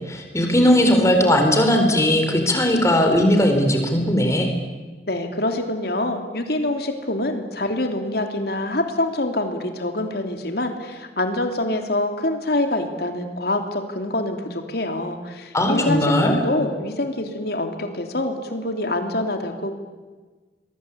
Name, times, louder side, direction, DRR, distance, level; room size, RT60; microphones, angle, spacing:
voice 1, 0.1-4.5 15.5-16.3, left 1 dB, 15° left, 4 dB, 4.5 m, -18 dB
voice 2, 5.1-19.7, left 1 dB, 60° left, 5 dB, 3.1 m, -25 dB
28.0 x 22.5 x 8.7 m, 1.3 s
head